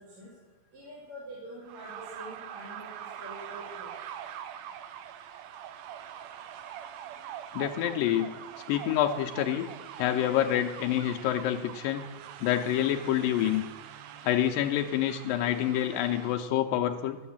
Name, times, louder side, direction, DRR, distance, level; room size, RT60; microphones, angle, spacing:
voice 1, 0.7-2.9 3.2-3.9, right 1 dB, 55° right, -6 dB, 3.9 m, -45 dB
sound 1, 1.6-16.5, right 10 dB, 90° right, 1.5 m, -43 dB
voice 2, 7.5-8.3 8.7-9.7 10.0-12.1 12.4-13.6 14.2-17.2, left 11 dB, 85° left, 4 dB, 2.3 m, -27 dB
12.0 x 7.4 x 7.2 m, 1.1 s
omnidirectional pair, 3.9 m